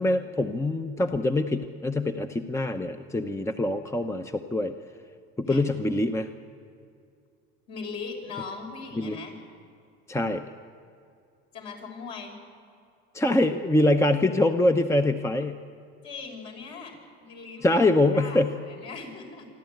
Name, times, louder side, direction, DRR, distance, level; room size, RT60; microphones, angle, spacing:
voice 1, 0.0-4.7 5.4-6.3 9.0-9.2 10.1-10.4 13.1-15.6 17.6-18.5, left 1 dB, 10° left, 7 dB, 0.8 m, -24 dB
voice 2, 7.7-9.4 11.5-12.4 16.0-19.5, left 4 dB, 60° left, 0 dB, 5.8 m, -40 dB
27.0 x 12.0 x 9.2 m, 2.4 s
supercardioid pair, 90°, 31 cm